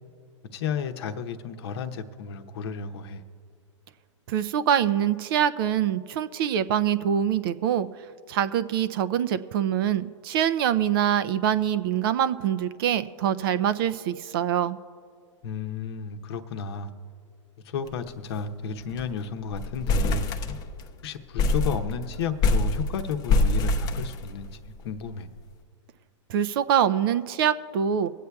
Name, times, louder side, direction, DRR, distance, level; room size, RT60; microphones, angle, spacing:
voice 1, 0.5-3.2 15.4-16.9 17.6-20.3 21.0-25.3, left 6 dB, 55° left, 7 dB, 0.8 m, -33 dB
voice 2, 4.3-7.9 8.3-14.8 26.3-28.1, right 9 dB, 45° right, 13 dB, 0.5 m, -24 dB
sound 1, 17.9-18.1 18.4-18.5 18.8-19.2 19.5-20.9 21.4-24.7, left 2 dB, 25° left, 0.6 m, -25 dB
24.5 x 8.3 x 2.3 m, 2.2 s
hypercardioid pair, 135°, 16 cm